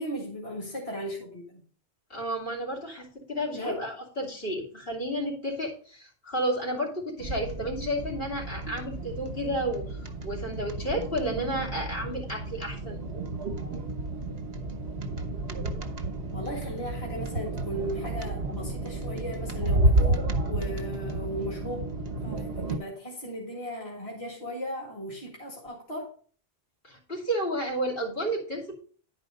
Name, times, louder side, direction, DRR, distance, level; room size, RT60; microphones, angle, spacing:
voice 1, 0.0-1.6 3.5-3.8 16.3-22.0 22.2-26.1, equal, 30° left, -2 dB, 2.0 m, -36 dB
voice 2, 2.1-13.0 26.8-28.7, equal, 60° left, -1 dB, 3.1 m, -32 dB
sound 1, 7.2-22.8, right 2 dB, 70° right, 1.4 m, -31 dB
10.5 x 4.8 x 5.2 m, 0.43 s
omnidirectional pair, 1.1 m